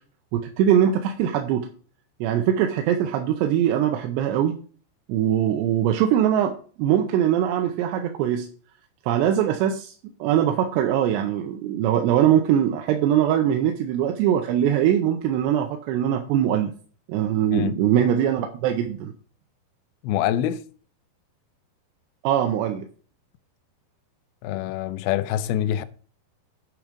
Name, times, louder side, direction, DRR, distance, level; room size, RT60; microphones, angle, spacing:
voice 1, 0.3-1.7 2.2-4.5 5.1-8.5 9.1-9.9 10.2-16.7 17.1-19.1 22.2-22.9, right 10 dB, 80° right, 2.8 m, -22 dB
voice 2, 20.0-20.6 24.4-25.8, left 11 dB, 80° left, 2.3 m, -25 dB
9.2 x 4.8 x 5.2 m
omnidirectional pair, 5.1 m